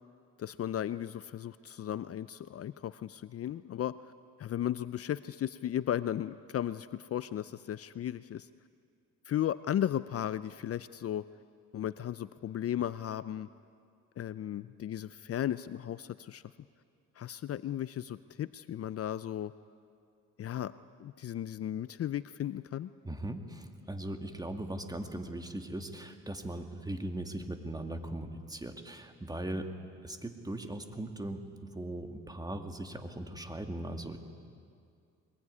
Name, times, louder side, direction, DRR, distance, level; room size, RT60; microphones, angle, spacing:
voice 1, 0.4-4.0 4.4-8.5 9.3-11.3 11.7-13.5 14.2-16.4 17.2-19.5 20.4-20.7 21.0-22.9, left 11 dB, 50° left, 15 dB, 0.6 m, -35 dB
voice 2, 23.0-29.7 30.0-34.2, right 1 dB, 15° right, 6 dB, 2.2 m, -39 dB
23.0 x 21.0 x 9.7 m, 2.4 s
cardioid pair, 90°, 30 cm